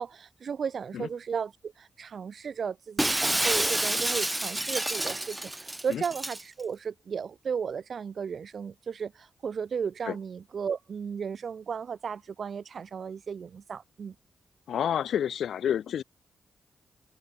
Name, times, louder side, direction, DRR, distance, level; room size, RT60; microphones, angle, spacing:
voice 1, 0.0-14.1, right 6 dB, 65° right, 1.2 m, -35 dB
Shatter, 3.0-6.4, right 1 dB, 15° right, 1.0 m, -28 dB
voice 2, 14.7-16.0, left 9 dB, 80° left, 4.1 m, -29 dB
supercardioid pair, 50°, 0 cm